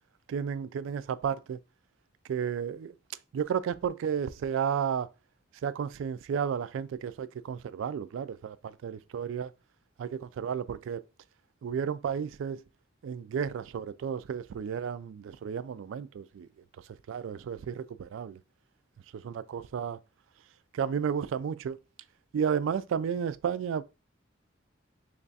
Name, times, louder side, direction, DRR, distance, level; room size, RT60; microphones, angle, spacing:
voice 1, 0.3-1.6 2.3-2.9 3.3-5.1 5.6-9.5 10.0-11.0 11.6-12.6 13.0-16.5 17.1-18.4 19.1-20.0 20.7-21.8 22.3-23.8, right 7 dB, 80° right, 0.3 m, -32 dB
3.2 x 2.3 x 4.0 m
head